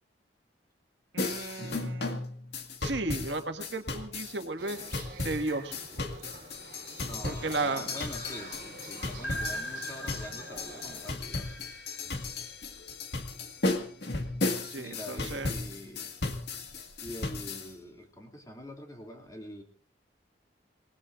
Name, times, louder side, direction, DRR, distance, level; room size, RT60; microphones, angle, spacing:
voice 1, 1.1-2.2 2.8-4.8 5.2-5.8 7.2-7.9 14.7-15.6, right 2 dB, 75° right, 6 dB, 1.9 m, -34 dB
sound 1, 1.2-17.7, left 3 dB, 60° left, 1.9 m, -35 dB
sound 2, 4.6-11.2, right 3 dB, 55° right, 3.3 m, -47 dB
voice 2, 7.0-11.6 14.8-16.1 17.0-19.6, left 1 dB, 20° left, 2 dB, 2.5 m, -44 dB
sound 3, 9.2-12.2, equal, 85° left, 1.3 m, -40 dB
27.5 x 19.5 x 2.6 m, 0.43 s
head